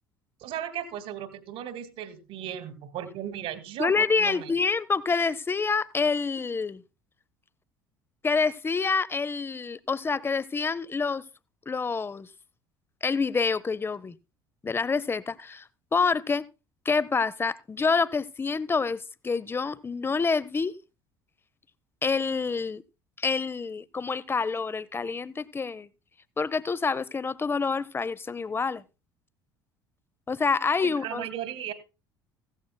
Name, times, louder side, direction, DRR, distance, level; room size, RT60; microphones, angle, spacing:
voice 1, 0.4-4.5 30.8-31.7, right 10 dB, 55° right, 2.1 m, -36 dB
voice 2, 3.8-6.8 8.2-11.2 11.7-12.3 13.0-14.1 14.6-15.6 15.9-16.4 16.8-20.7 22.0-22.8 23.2-25.9 26.4-28.8 30.3-31.3, left 4 dB, 20° left, 0.7 m, -27 dB
16.5 x 14.0 x 2.2 m
figure-of-eight pair, 60°, 12 cm